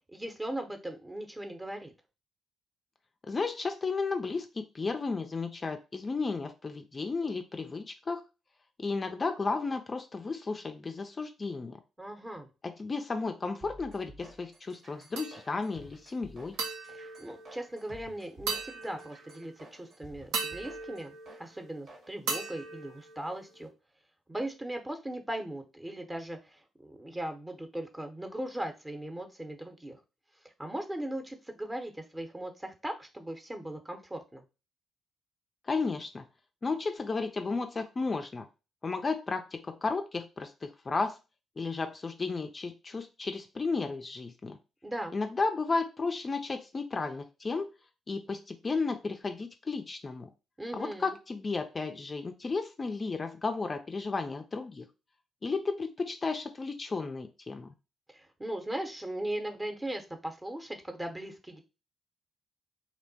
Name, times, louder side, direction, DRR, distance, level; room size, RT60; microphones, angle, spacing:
voice 1, 0.1-1.9 12.0-12.5 16.9-23.7 24.3-30.0 30.4-34.4 44.8-45.2 50.6-51.1 58.1-61.6, right 1 dB, 15° right, 5 dB, 0.7 m, -38 dB
voice 2, 3.3-8.2 8.8-11.8 12.6-16.6 35.6-36.2 36.6-38.5 38.8-41.2 41.6-44.6 45.1-47.7 48.1-50.3 50.7-54.9 55.4-57.7, left 4 dB, 35° left, 6 dB, 0.3 m, -33 dB
sound 1, 13.6-22.1, right 1 dB, 60° right, 0.9 m, -53 dB
sound 2, 15.2-15.8 16.6-18.0 18.5-19.5 20.3-21.8 22.3-23.7, right 4 dB, 75° right, 0.5 m, -38 dB
2.9 x 2.1 x 2.7 m, 0.30 s
hypercardioid pair, 40°, 0 cm